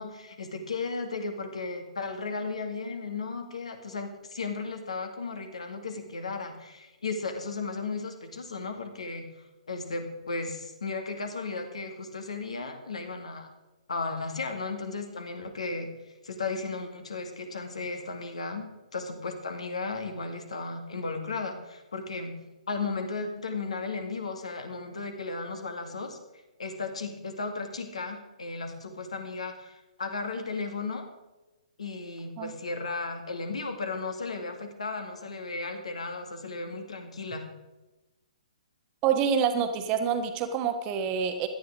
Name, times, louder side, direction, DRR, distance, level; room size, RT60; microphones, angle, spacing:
voice 1, 0.0-9.3 9.7-13.5 13.9-15.9 16.2-18.7 18.9-26.2 26.6-31.1 31.8-37.5, left 3 dB, 60° left, 6 dB, 2.0 m, -35 dB
voice 2, 39.0-41.5, right 7 dB, 25° right, 7 dB, 1.2 m, -27 dB
17.5 x 12.0 x 3.6 m, 1.1 s
figure-of-eight pair, 125°, 4 cm